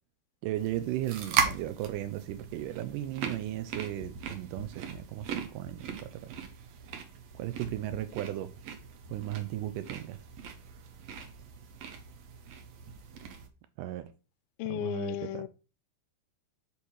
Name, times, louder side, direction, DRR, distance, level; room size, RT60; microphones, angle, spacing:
voice 1, 0.4-6.3 7.3-8.5 9.1-10.2 13.8-14.1 14.6-15.5, right 13 dB, 90° right, 1.8 m, -36 dB
sound 1, 0.6-13.5, right 6 dB, 70° right, 1.7 m, -38 dB
voice 2, 14.6-15.5, left 13 dB, 80° left, 2.2 m, -34 dB
5.9 x 5.8 x 6.3 m
omnidirectional pair, 4.5 m